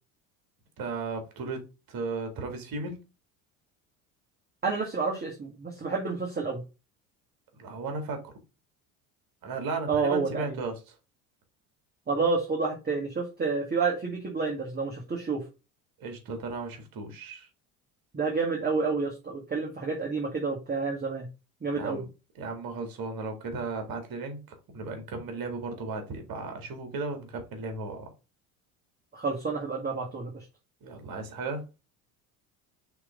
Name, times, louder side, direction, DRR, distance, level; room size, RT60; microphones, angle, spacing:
voice 1, 0.8-3.0 7.6-8.3 9.4-10.9 16.0-17.5 21.7-22.1 22.4-28.1 30.8-31.6, right 3 dB, 55° right, 2.3 m, -35 dB
voice 2, 4.6-6.6 9.9-10.5 12.1-15.4 18.1-21.3 21.6-22.0 29.1-30.4, right 4 dB, 25° right, 1.9 m, -29 dB
5.9 x 3.4 x 5.2 m
supercardioid pair, 90°, 42 cm